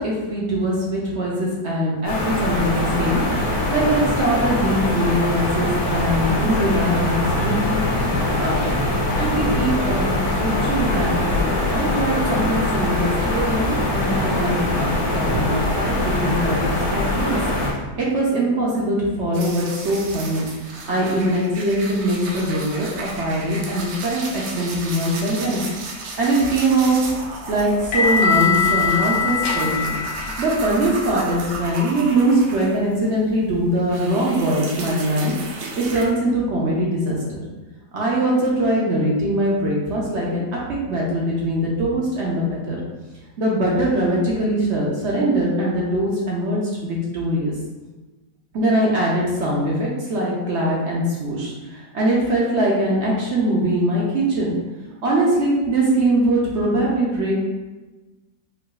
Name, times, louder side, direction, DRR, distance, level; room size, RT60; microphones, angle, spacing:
voice 1, 0.0-7.8 8.4-8.9 9.1-17.4 18.0-20.4 20.9-25.6 26.2-27.0 27.5-30.0 30.4-35.3 35.8-37.4 37.9-42.8 43.4-47.5 48.5-54.6 55.0-57.4, right 1 dB, 65° right, -4 dB, 0.7 m, -22 dB
sound 1, 2.1-17.7, left 1 dB, 55° left, 1.0 m, -22 dB
sound 2, 19.3-33.1 33.4-36.0, right 3 dB, 80° right, 1.2 m, -34 dB
sound 3, 26.8-31.7, left 5 dB, 70° left, 1.2 m, -23 dB
4.7 x 2.3 x 2.3 m, 1.2 s
omnidirectional pair, 1.7 m